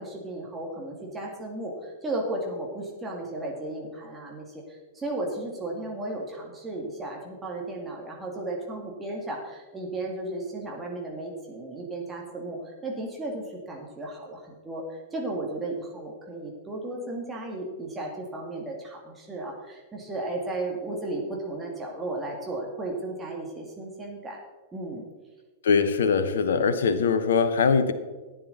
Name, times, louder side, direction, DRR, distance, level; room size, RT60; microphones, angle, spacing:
voice 1, 0.0-24.4 24.7-25.1, right 2 dB, 15° right, -1 dB, 2.4 m, -34 dB
voice 2, 25.6-27.9, left 5 dB, 60° left, 11 dB, 1.0 m, -22 dB
14.0 x 9.6 x 4.1 m, 1.3 s
figure-of-eight pair, 100°, 0 cm